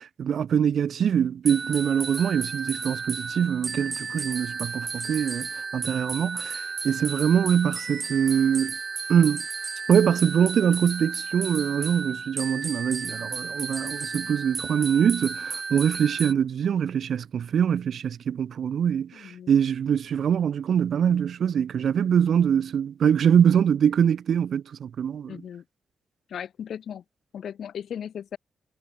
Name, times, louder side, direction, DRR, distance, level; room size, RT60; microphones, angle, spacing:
voice 1, 0.0-8.8 9.1-9.4 9.9-25.4, right 8 dB, 65° right, 0.7 m, -23 dB
sound 1, 1.5-16.3, right 4 dB, 35° right, 0.8 m, -33 dB
voice 2, 19.1-19.5 25.3-25.6 26.3-27.0 27.3-28.4, left 8 dB, 75° left, 1.1 m, -37 dB
wide cardioid pair, 155°, 0 cm